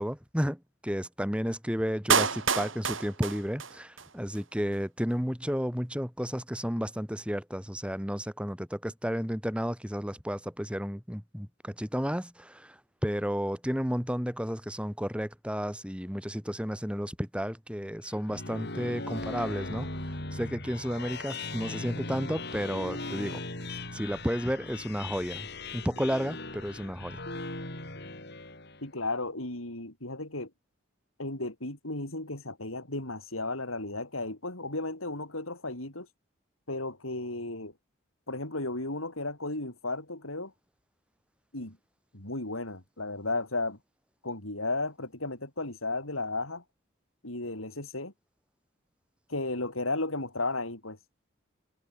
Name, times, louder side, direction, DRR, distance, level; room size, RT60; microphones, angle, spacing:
voice 1, 0.0-23.4 23.9-25.5 25.7-27.2, equal, 5° right, 7.3 m, -32 dB
Clapping, 2.1-4.1 4.3-4.4, right 6 dB, 70° right, 7.4 m, -28 dB
sound 1, 18.0-28.9, left 2 dB, 50° left, 6.5 m, -39 dB
voice 2, 28.8-30.5 31.2-36.1 36.7-37.7 38.3-40.5 41.5-41.8 42.1-43.8 44.2-46.6 47.2-48.1 49.3-51.0, left 2 dB, 85° left, 6.0 m, -34 dB
head